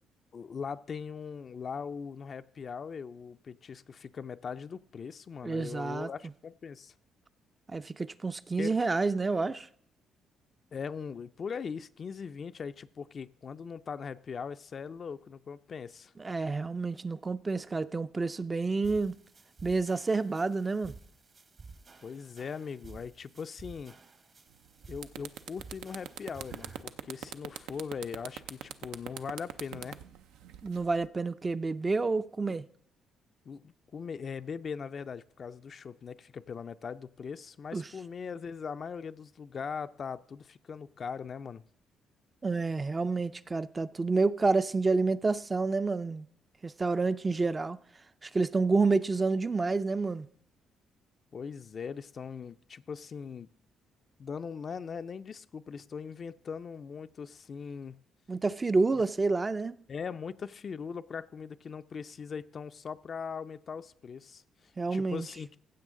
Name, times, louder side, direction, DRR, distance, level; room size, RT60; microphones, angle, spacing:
voice 1, 0.3-6.9 8.6-8.7 10.7-16.1 22.0-23.9 24.9-30.0 33.5-41.6 51.3-53.5 54.2-58.0 59.9-65.6, left 6 dB, 45° left, 0.4 m, -40 dB
voice 2, 5.4-6.1 7.7-9.7 16.2-19.1 19.6-20.9 30.6-32.6 37.7-37.9 42.4-46.3 46.6-47.8 48.2-50.3 58.3-59.8 64.8-65.3, right 3 dB, 25° right, 0.4 m, -29 dB
sound 1, 18.8-26.8, right 4 dB, 45° right, 1.0 m, -53 dB
sound 2, 24.5-24.7 25.0-31.1, right 10 dB, 90° right, 0.5 m, -42 dB
15.0 x 7.6 x 3.7 m
cardioid pair, 80°, 0 cm